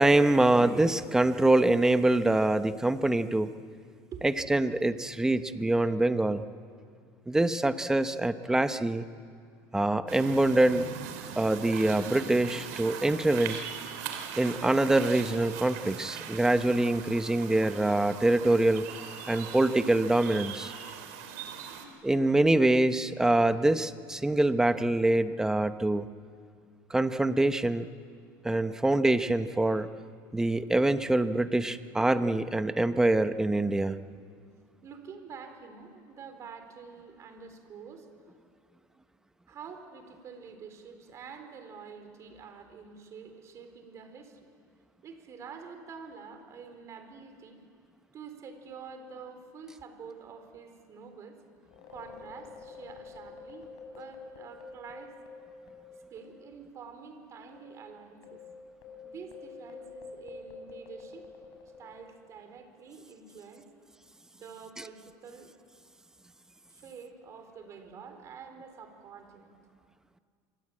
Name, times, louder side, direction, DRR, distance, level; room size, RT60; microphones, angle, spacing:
voice 1, 0.0-3.5 4.2-6.4 7.3-9.0 9.7-10.8 11.4-13.6 14.4-18.9 19.3-20.7 22.0-26.1 26.9-27.9 28.4-29.9 30.3-34.0, right 2 dB, 5° right, 10 dB, 0.9 m, -25 dB
sound 1, 10.1-21.9, right 7 dB, 85° right, 3.5 m, -41 dB
voice 2, 34.8-38.1 39.5-44.4 45.0-47.6 48.1-51.4 51.9-55.2 55.8-58.4 59.0-61.3 61.8-63.7 64.3-65.5 66.7-69.6, right 6 dB, 35° right, 7 dB, 4.1 m, -47 dB
sound 2, 51.7-56.5 56.7-56.9 57.5-62.3, left 4 dB, 65° left, 6.2 m, -48 dB
27.0 x 25.0 x 8.8 m, 2.2 s
supercardioid pair, 140°, 9 cm